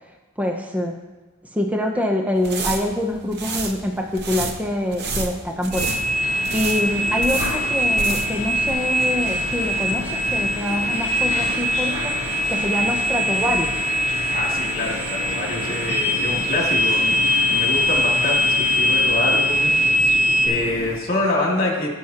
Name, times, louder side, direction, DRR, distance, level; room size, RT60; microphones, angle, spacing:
voice 1, 0.4-1.0 1.5-6.0 6.5-12.1 12.5-13.9, left 1 dB, 5° right, 1 dB, 0.6 m, -25 dB
sound 1, 2.3-8.4 8.7-8.8, right 4 dB, 45° right, 0.8 m, -30 dB
sound 2, 5.7-20.5, equal, 30° right, 1.9 m, -22 dB
sound 3, 5.8-21.0, left 2 dB, 60° left, 0.7 m, -34 dB
voice 2, 14.3-19.8 20.4-21.9, left 2 dB, 40° left, -2 dB, 2.3 m, -26 dB
17.0 x 6.4 x 2.9 m, 1.2 s
head